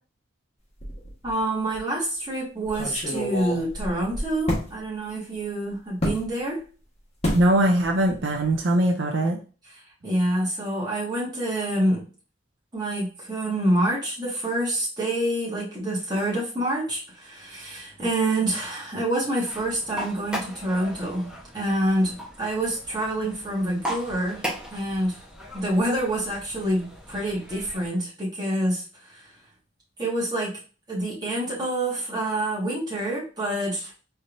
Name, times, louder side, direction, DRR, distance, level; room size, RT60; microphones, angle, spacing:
sound 1, 0.8-1.4 1.7-1.8 2.7-4.7 6.0-6.2 7.2-7.5 7.8-8.2 8.4-8.6, equal, 35° left, 1.5 m, -29 dB
voice 1, 1.2-6.6 10.0-12.0 12.7-24.5 24.7-25.2 25.5-29.2 30.0-30.5 30.9-34.0, right 1 dB, 20° right, -6 dB, 1.8 m, -27 dB
voice 2, 7.3-9.4, right 1 dB, 70° right, 2 dB, 0.5 m, -21 dB
sound 2, 19.4-27.9, equal, 5° right, 1.1 m, -38 dB
4.1 x 3.4 x 2.6 m, 0.37 s
head